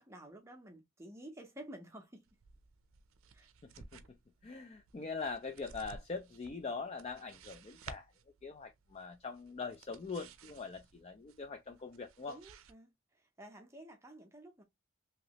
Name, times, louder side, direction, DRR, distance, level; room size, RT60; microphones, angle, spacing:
voice 1, 0.0-2.3 3.3-3.5 12.3-12.9 13.2-14.6, right 1 dB, 15° right, 0.6 m, -52 dB
sound 1, 2.3-12.7, right 5 dB, 80° right, 0.5 m, -56 dB
voice 2, 3.6-4.0 4.4-8.1 8.4-12.4, left 4 dB, 30° left, 0.3 m, -42 dB
3.0 x 2.8 x 2.8 m
head